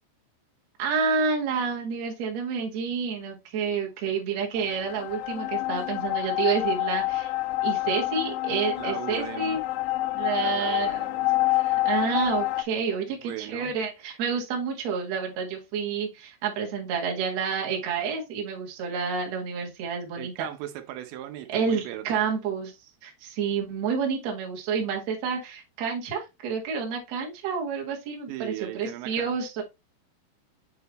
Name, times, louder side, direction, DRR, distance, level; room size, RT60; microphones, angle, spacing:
voice 1, 0.8-7.3 7.6-9.6 10.1-20.5 21.5-29.6, right 6 dB, 50° right, 2.2 m, -29 dB
sound 1, 4.6-12.6, left 17 dB, 85° left, 2.7 m, -27 dB
voice 2, 8.8-9.6 10.4-11.3 13.1-13.7 20.2-22.2 28.3-29.3, right 12 dB, 85° right, 3.2 m, -38 dB
7.7 x 4.6 x 3.1 m
omnidirectional pair, 5.1 m